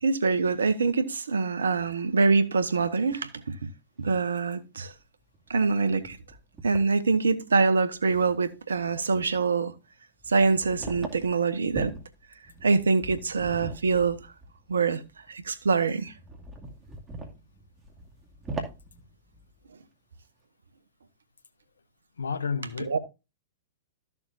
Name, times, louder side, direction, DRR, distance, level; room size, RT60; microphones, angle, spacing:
voice 1, 0.0-3.7 4.0-4.9 5.5-6.2 6.6-9.7 10.3-12.0 12.6-14.2 14.7-15.0 15.3-16.1 22.8-23.0, right 4 dB, 85° right, 1.0 m, -25 dB
sound 1, 4.4-4.5 4.9-5.0 5.3-6.9 7.9-8.0 8.4-8.8 9.0-9.4 10.2-19.6, right 2 dB, 20° right, 2.4 m, -41 dB
voice 2, 22.2-23.0, left 5 dB, 85° left, 0.9 m, -31 dB
13.0 x 7.0 x 2.6 m
hypercardioid pair, 110°, 0 cm